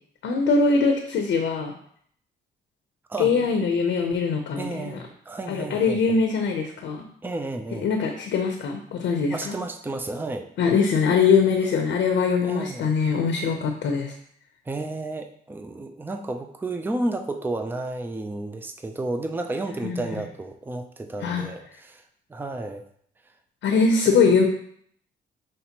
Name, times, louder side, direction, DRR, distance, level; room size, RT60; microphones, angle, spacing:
voice 1, 0.2-1.7 3.2-5.0 5.5-7.1 7.7-9.6 10.6-14.1 19.8-20.2 21.2-21.4 23.6-24.4, left 5 dB, 70° left, 3 dB, 0.7 m, -22 dB
voice 2, 3.1-3.5 4.6-6.0 7.2-7.9 9.3-10.5 12.4-12.9 14.7-22.0 22.3-22.8, right 2 dB, 10° right, 6 dB, 0.5 m, -32 dB
5.8 x 3.2 x 2.9 m, 0.64 s
cardioid pair, 90°, 20 cm